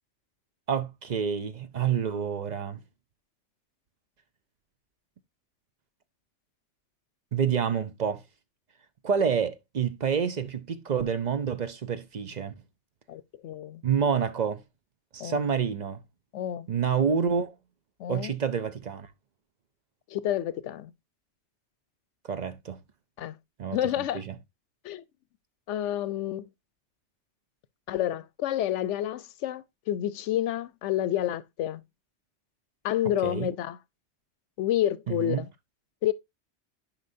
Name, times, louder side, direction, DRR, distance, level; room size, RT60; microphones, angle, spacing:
voice 1, 0.7-2.8 7.3-8.2 9.0-12.5 13.8-14.6 15.1-16.0 16.7-17.5 18.1-19.1 22.2-22.8 23.6-24.4 33.2-33.5 35.1-35.4, right 7 dB, 50° right, 0.6 m, -28 dB
voice 2, 13.1-13.8 15.2-15.4 16.3-16.7 18.0-18.3 20.1-20.9 23.2-23.4 23.7-24.2 24.8-25.0 25.7-26.4 27.9-31.8 32.8-33.8 34.6-35.5 36.0-36.1, left 12 dB, 85° left, 0.9 m, -29 dB
9.9 x 4.9 x 2.6 m
omnidirectional pair, 1.2 m